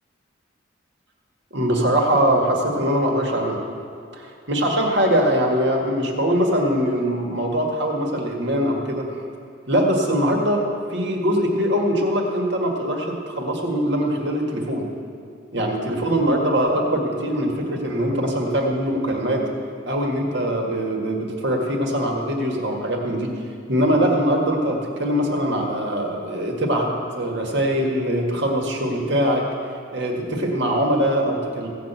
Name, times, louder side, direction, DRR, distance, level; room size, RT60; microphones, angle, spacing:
voice 1, 1.5-3.6 4.1-9.1 9.7-14.9 15.5-19.4 19.9-23.3 23.7-26.9 27.2-29.4 29.9-31.7, equal, 55° right, 0 dB, 1.8 m, -22 dB
16.0 x 5.9 x 8.2 m, 2.4 s
head